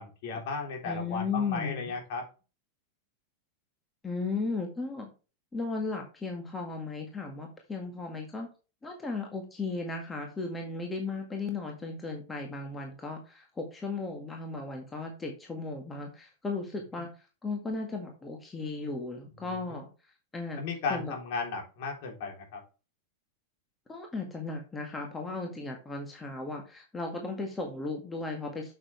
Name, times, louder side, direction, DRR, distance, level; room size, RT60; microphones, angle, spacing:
voice 1, 0.0-2.3 19.5-19.8 20.6-22.6, left 4 dB, 50° left, 1 dB, 3.6 m, -35 dB
voice 2, 0.8-1.9 4.0-5.1 5.5-8.5 8.8-17.1 17.4-19.9 20.3-20.6 20.9-21.1 23.9-28.7, left 3 dB, 15° left, 2 dB, 1.9 m, -35 dB
8.6 x 7.1 x 3.3 m, 0.32 s
figure-of-eight pair, 90°, 0 cm